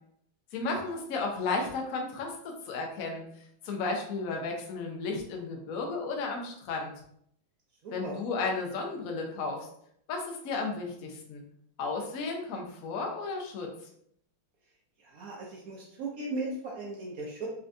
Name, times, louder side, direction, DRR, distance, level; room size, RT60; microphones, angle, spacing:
voice 1, 0.5-3.3 3.6-6.9 7.9-9.7 10.1-11.4 11.8-13.7, left 3 dB, 65° left, 1 dB, 0.8 m, -33 dB
voice 2, 7.8-8.1 15.0-17.5, right 2 dB, 80° right, -3 dB, 0.7 m, -37 dB
3.9 x 3.4 x 2.6 m, 0.69 s
omnidirectional pair, 2.4 m